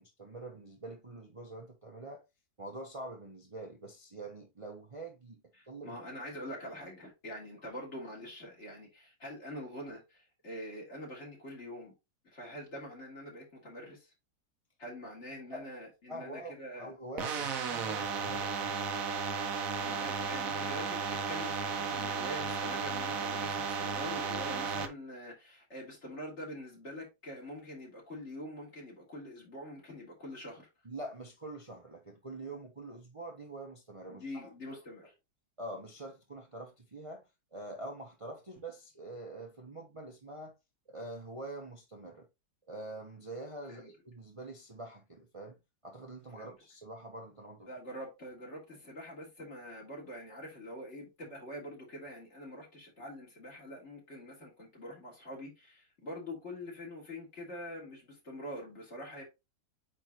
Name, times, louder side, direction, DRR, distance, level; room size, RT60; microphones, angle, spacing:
voice 1, 0.0-2.2 2.6-6.0 15.5-15.7 16.1-18.8 30.8-34.5 35.6-37.2 37.5-40.5 40.9-42.3 42.7-45.6 45.8-47.7, right 2 dB, 25° right, 0.9 m, -45 dB
voice 2, 5.6-11.9 12.2-14.1 14.8-16.9 19.8-30.7 34.1-35.0 43.7-43.9 46.4-46.5 47.7-59.2, equal, 45° left, 3.3 m, -45 dB
sound 1, 17.2-24.9, right 5 dB, 60° right, 1.3 m, -34 dB
8.9 x 3.6 x 3.0 m
omnidirectional pair, 1.7 m